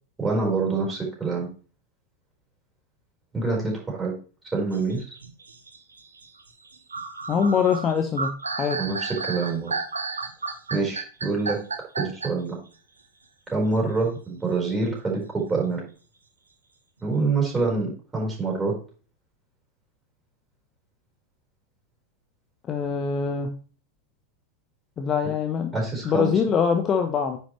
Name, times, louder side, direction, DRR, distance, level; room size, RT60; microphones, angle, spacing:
voice 1, 0.2-1.5 3.3-4.1 4.5-5.0 8.8-9.7 10.7-11.6 12.0-12.6 13.5-15.8 17.0-18.7 25.7-26.3, right 3 dB, 10° right, -2 dB, 4.6 m, -26 dB
sound 1, 4.7-12.5, right 4 dB, 75° right, 1.0 m, -32 dB
voice 2, 7.3-8.3 8.6-8.8 22.7-23.5 25.0-25.7 26.0-27.4, left 6 dB, 25° left, 6 dB, 0.9 m, -23 dB
9.5 x 6.2 x 3.2 m, 0.39 s
figure-of-eight pair, 90°, 0 cm